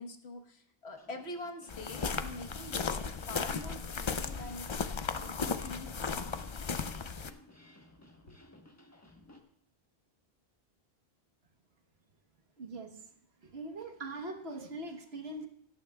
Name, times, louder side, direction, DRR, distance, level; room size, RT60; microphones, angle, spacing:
voice 1, 0.0-4.7 5.2-6.4 8.3-8.4, left 2 dB, 75° left, 3 dB, 1.5 m, -45 dB
sound 1, 0.9-9.4, left 1 dB, 15° left, 1.2 m, -57 dB
sound 2, 1.7-7.3, left 5 dB, 40° left, 0.4 m, -36 dB
voice 2, 12.6-13.0 13.4-15.5, right 2 dB, 75° right, 4 dB, 1.4 m, -42 dB
17.5 x 12.0 x 2.3 m, 0.69 s
omnidirectional pair, 1.1 m